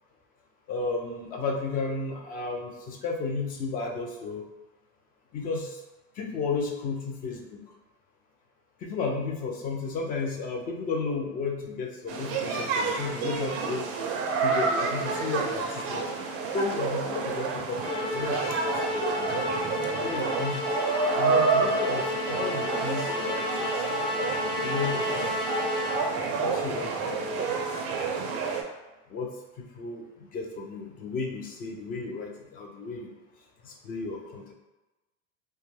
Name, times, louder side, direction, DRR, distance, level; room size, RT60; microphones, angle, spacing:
voice 1, 0.7-4.4 5.3-5.8 6.2-7.6 8.8-13.9 14.4-16.1 16.5-19.6 20.0-20.7 21.1-23.7 24.6-25.1 25.7-25.9 26.4-27.6 29.1-29.3 29.6-33.1 33.6-34.5, left 4 dB, 25° left, 0 dB, 0.3 m, -33 dB
sound 1, 12.1-28.6, right 4 dB, 40° right, 0.4 m, -29 dB
Musical instrument, 17.8-26.3, left 1 dB, 60° left, 0.8 m, -32 dB
2.2 x 2.1 x 3.1 m, 1.1 s
supercardioid pair, 115°, 36 cm